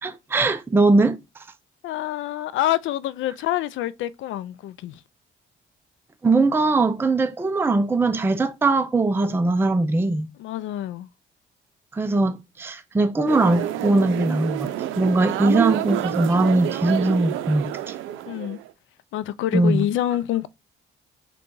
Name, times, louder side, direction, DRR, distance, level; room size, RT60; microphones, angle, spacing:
voice 1, 0.0-1.4 6.2-10.3 11.9-18.0 19.5-19.9, right 2 dB, 10° right, 0.4 m, -21 dB
voice 2, 1.8-5.0 10.4-11.1 18.3-18.6 19.1-20.5, left 13 dB, 75° left, 0.4 m, -26 dB
sound 1, 13.3-18.7, right 13 dB, 90° right, 0.5 m, -28 dB
3.8 x 2.3 x 3.8 m
cardioid pair, 90°, 20 cm